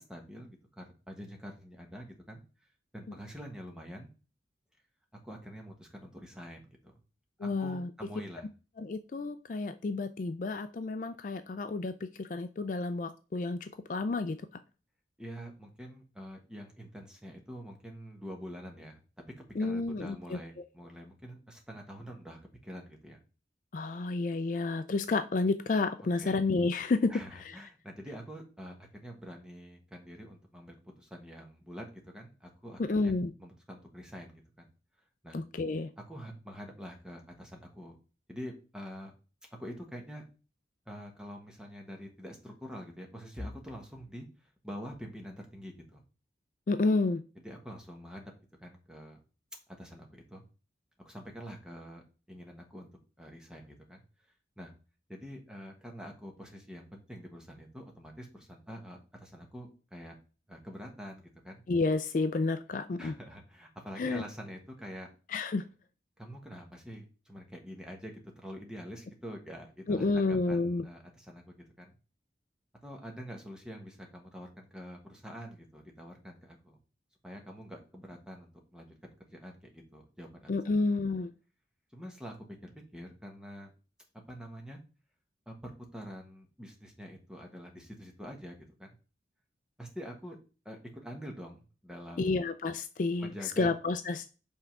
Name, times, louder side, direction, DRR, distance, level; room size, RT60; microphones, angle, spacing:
voice 1, 0.0-2.4 2.9-4.1 5.2-7.0 7.4-8.5 15.2-19.0 19.6-23.2 26.2-26.4 27.1-33.1 33.4-34.7 35.2-35.4 36.1-37.9 38.3-39.1 39.6-40.2 40.9-46.0 47.3-48.3 48.6-49.2 49.8-50.4 51.0-52.0 52.3-52.9 53.2-54.0 54.6-54.7 55.1-60.2 60.5-61.6 63.0-65.1 66.2-72.0 72.8-76.8 77.2-78.9 79.3-80.8 81.9-82.3 82.6-83.7 84.3-84.8 85.5-89.0 89.8-90.4 90.6-92.4 93.2-93.7, equal, 5° right, 1 dB, 1.2 m, -46 dB
voice 2, 7.4-7.9 8.8-14.4 19.6-20.4 23.7-27.6 32.9-33.3 35.3-35.9 46.7-47.2 61.7-63.1 64.0-64.2 65.3-65.6 69.9-70.8 80.5-81.3 92.2-94.3, left 3 dB, 45° left, 10 dB, 0.4 m, -30 dB
5.5 x 3.6 x 5.7 m, 0.34 s
head